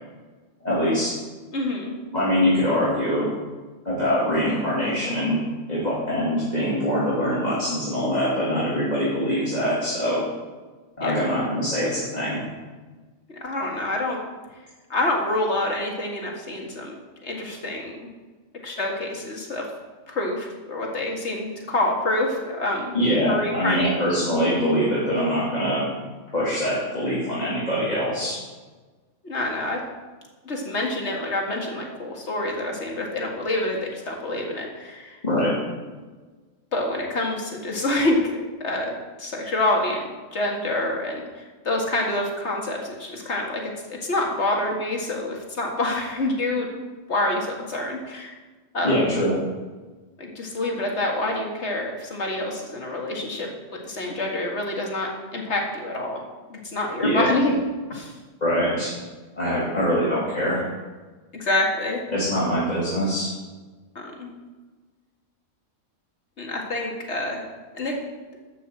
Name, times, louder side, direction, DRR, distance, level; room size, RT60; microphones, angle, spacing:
voice 1, 0.6-1.1 2.1-3.3 3.8-5.4 5.7-10.2 11.0-12.4 22.9-25.9 26.3-28.4 35.2-35.5 48.8-49.3 57.0-57.3 58.4-58.9 59.3-60.6 62.1-63.3, equal, 35° left, -9 dB, 2.9 m, -23 dB
voice 2, 1.5-1.9 11.0-11.1 13.4-14.2 14.9-16.9 17.2-18.1 18.6-19.7 20.1-23.0 23.3-23.9 29.2-29.8 30.5-35.2 36.7-38.9 39.2-40.0 40.3-46.7 47.1-48.3 48.7-49.0 50.2-53.5 53.8-56.2 56.5-57.5 57.9-58.1 61.3-62.0 64.0-64.3 66.4-67.4 67.7-68.0, left 2 dB, 60° left, 0 dB, 2.3 m, -27 dB
12.5 x 5.8 x 7.8 m, 1.3 s
omnidirectional pair, 1.3 m